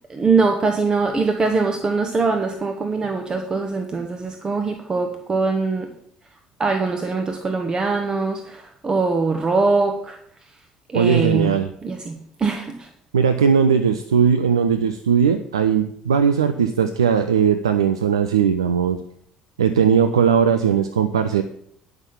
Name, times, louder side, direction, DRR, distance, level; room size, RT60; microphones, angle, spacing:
voice 1, 0.1-5.9 6.6-10.2 10.9-12.9, right 4 dB, 30° right, 4 dB, 1.2 m, -22 dB
voice 2, 10.9-11.7 13.1-19.0 19.6-21.4, right 7 dB, 85° right, 10 dB, 0.4 m, -18 dB
9.7 x 5.9 x 7.3 m, 0.68 s
figure-of-eight pair, 55°, 3 cm